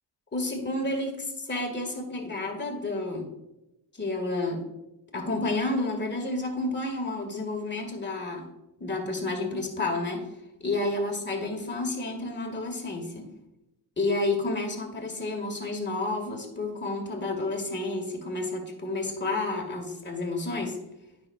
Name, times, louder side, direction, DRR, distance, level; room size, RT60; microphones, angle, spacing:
voice 1, 0.3-3.3 3.9-4.7 5.1-8.5 8.8-10.3 10.6-13.3 14.0-20.8, left 2 dB, 25° left, 2 dB, 1.9 m, -30 dB
9.5 x 5.9 x 2.4 m, 0.91 s
cardioid pair, 70°, 41 cm